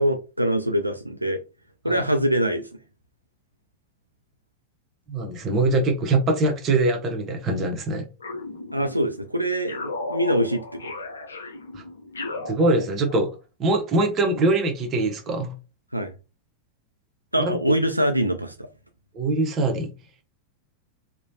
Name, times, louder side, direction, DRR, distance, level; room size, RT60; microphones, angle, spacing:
voice 1, 0.0-1.4 1.8-2.7 8.7-11.0 15.9-16.1 17.3-18.7, equal, 85° right, 6 dB, 0.3 m, -24 dB
voice 2, 5.1-8.0 11.7-11.8 12.5-13.3 13.6-15.5 17.4-17.6 19.1-19.9, right 2 dB, 30° right, 3 dB, 0.8 m, -23 dB
sound 1, 8.2-9.2 9.7-13.3, left 2 dB, 75° left, 0.5 m, -35 dB
3.0 x 2.1 x 2.7 m, 0.30 s
figure-of-eight pair, 90°, 0 cm